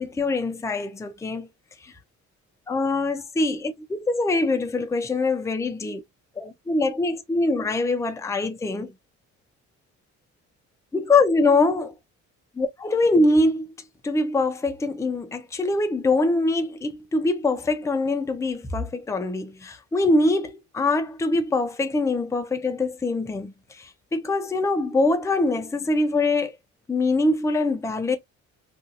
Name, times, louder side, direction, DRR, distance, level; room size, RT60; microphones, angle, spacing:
voice 1, 0.0-1.5 2.7-6.0 6.4-8.9 10.9-11.9 12.6-13.7 14.0-26.5 26.9-28.2, left 2 dB, 10° left, 0.5 m, -23 dB
2.7 x 2.4 x 2.6 m
cardioid pair, 90°, 30 cm